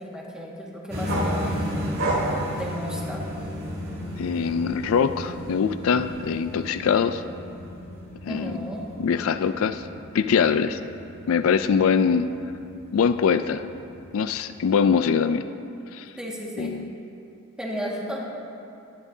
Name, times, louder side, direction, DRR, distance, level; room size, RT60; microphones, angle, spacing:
voice 1, 0.0-1.6 2.6-3.3 8.3-8.9 16.2-16.7 17.6-18.3, equal, 5° right, -4 dB, 1.7 m, -33 dB
sound 1, 0.9-14.9, equal, 50° right, 2.7 m, -35 dB
sound 2, 1.1-3.7 4.1-6.1, right 1 dB, 75° right, 3.3 m, -30 dB
voice 2, 4.2-7.2 8.2-8.7 9.0-9.9 10.1-10.8 11.3-12.3 12.9-13.6 14.1-15.4 15.9-16.1 16.6-16.9, left 6 dB, 70° left, 11 dB, 0.4 m, -23 dB
21.5 x 11.0 x 2.7 m, 2.8 s
head